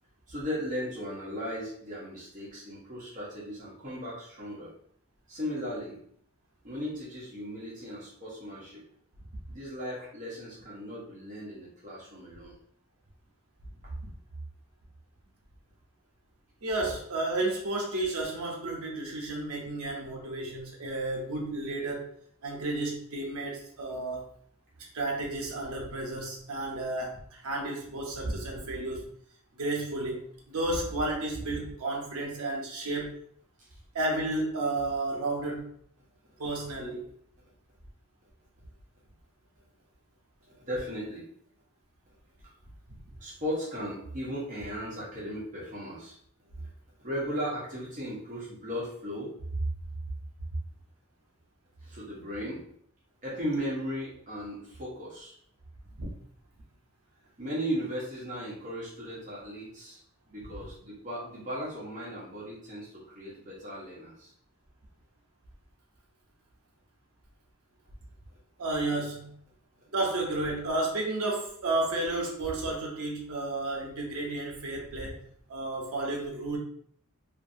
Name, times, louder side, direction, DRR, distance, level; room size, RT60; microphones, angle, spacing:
voice 1, 0.3-4.7 5.3-6.0 6.6-8.8 9.5-12.6 40.4-41.2 43.2-46.1 46.5-46.7 47.0-49.6 51.8-52.6 53.2-55.3 57.4-60.0 60.3-64.3, equal, 35° right, -6 dB, 0.9 m, -36 dB
voice 2, 16.6-22.1 22.4-24.3 24.9-29.1 29.5-33.2 33.9-35.7 36.4-37.1 56.0-56.1 68.6-69.4 69.9-76.6, right 2 dB, 70° right, 0 dB, 0.8 m, -32 dB
2.6 x 2.6 x 2.6 m, 0.64 s
head